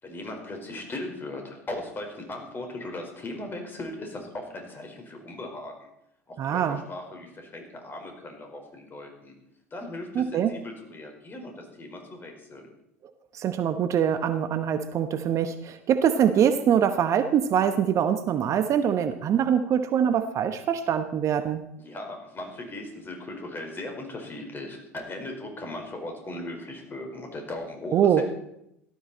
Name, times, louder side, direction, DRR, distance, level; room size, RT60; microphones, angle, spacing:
voice 1, 0.0-5.9 6.3-9.3 9.7-12.7 21.8-28.2, left 2 dB, 25° left, 3 dB, 4.7 m, -38 dB
voice 2, 6.4-6.8 10.1-10.5 13.3-21.6 27.9-28.2, right 8 dB, 40° right, 9 dB, 1.1 m, -23 dB
17.5 x 13.0 x 4.3 m, 0.79 s
figure-of-eight pair, 70°, 8 cm